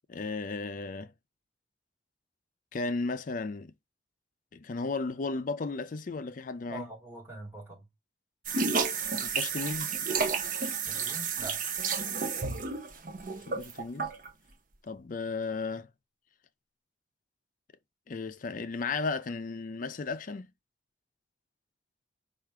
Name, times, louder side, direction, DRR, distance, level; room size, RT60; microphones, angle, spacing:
voice 1, 0.1-1.1 2.7-3.7 4.5-6.9 9.2-10.0 13.5-14.1 14.8-15.9 18.1-20.5, left 3 dB, 45° left, 0.4 m, -34 dB
voice 2, 6.6-7.9 10.8-11.6, right 2 dB, 15° right, 2.0 m, -44 dB
sound 1, 8.4-14.3, right 5 dB, 45° right, 0.7 m, -31 dB
4.8 x 2.5 x 4.5 m
head